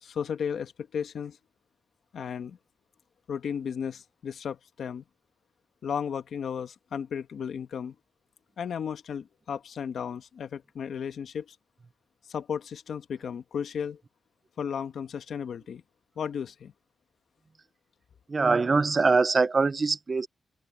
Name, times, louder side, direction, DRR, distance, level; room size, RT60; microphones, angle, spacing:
voice 1, 0.0-1.4 2.1-2.6 3.3-5.0 5.8-7.9 8.6-11.5 12.3-14.0 14.6-15.8 16.2-16.7, left 7 dB, 60° left, 1.2 m, -34 dB
voice 2, 18.3-20.3, right 4 dB, 25° right, 0.5 m, -23 dB
open air
wide cardioid pair, 180°, 0 cm